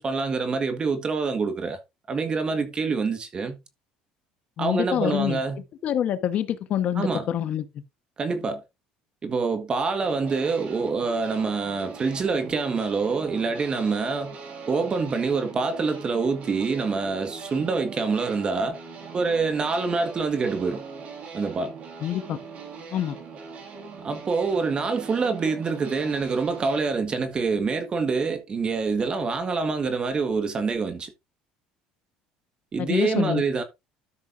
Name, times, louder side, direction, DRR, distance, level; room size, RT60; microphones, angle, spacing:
voice 1, 0.0-1.8 2.1-3.6 4.6-5.6 7.0-7.3 8.2-8.6 9.2-14.4 14.7-18.8 19.1-20.8 21.3-21.7 24.0-31.1 32.7-33.6, right 4 dB, 30° right, 1.5 m, -26 dB
voice 2, 4.6-5.4 5.8-7.6 22.0-22.4 22.9-23.2 32.8-33.4, left 10 dB, 50° left, 1.2 m, -26 dB
sound 1, 10.0-26.8, right 5 dB, 50° right, 3.6 m, -41 dB
13.0 x 6.4 x 2.6 m
supercardioid pair, 105°, 3 cm